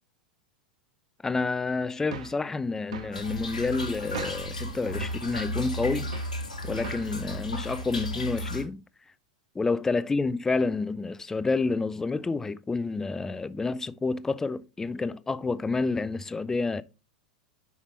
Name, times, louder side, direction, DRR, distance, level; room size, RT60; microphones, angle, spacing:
voice 1, 1.2-6.1 6.6-8.8 9.5-16.8, left 3 dB, 10° left, 0.5 m, -29 dB
sound 1, 2.1-2.4 2.9-3.2 4.1-4.5 5.0-5.3 6.1-6.4 6.8-7.2, right 5 dB, 65° right, 1.2 m, -39 dB
Toilet flush / Trickle dribble, 3.1-8.6, equal, 80° left, 1.9 m, -34 dB
9.9 x 5.8 x 2.7 m
figure-of-eight pair, 90°, 4 cm